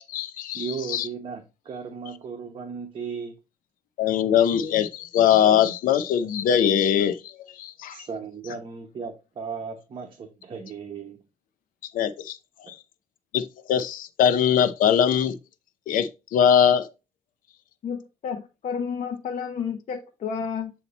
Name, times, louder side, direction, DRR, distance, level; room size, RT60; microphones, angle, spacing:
voice 1, 0.0-1.1 4.0-7.3 7.6-8.1 11.9-12.4 12.7-12.8 13.3-15.3 15.9-16.9, left 9 dB, 70° left, 0.6 m, -22 dB
voice 2, 0.5-3.4 7.9-11.2, right 5 dB, 35° right, 1.0 m, -36 dB
voice 3, 17.8-20.7, left 6 dB, 55° left, 0.9 m, -31 dB
8.2 x 2.9 x 4.1 m
cardioid pair, 130°, 14 cm